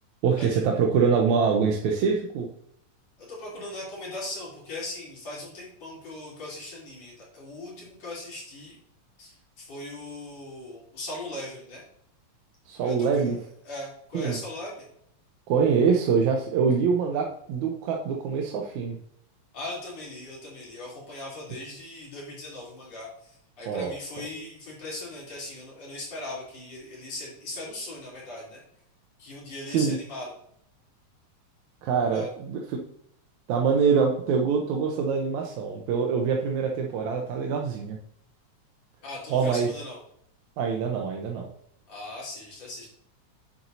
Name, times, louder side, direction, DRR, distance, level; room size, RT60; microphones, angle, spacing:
voice 1, 0.2-2.5 12.7-13.4 14.1-14.4 15.5-19.0 23.7-23.9 29.7-30.0 31.8-32.8 33.5-38.0 39.3-39.7 40.6-41.5, right 6 dB, 80° right, 1 dB, 2.2 m, -24 dB
voice 2, 3.2-8.8 9.2-11.8 12.8-13.2 13.6-14.9 19.5-28.6 29.2-30.3 32.1-32.3 39.0-40.0 41.9-42.9, left 2 dB, 60° left, -5 dB, 4.4 m, -39 dB
9.1 x 8.2 x 2.7 m, 0.68 s
omnidirectional pair, 3.4 m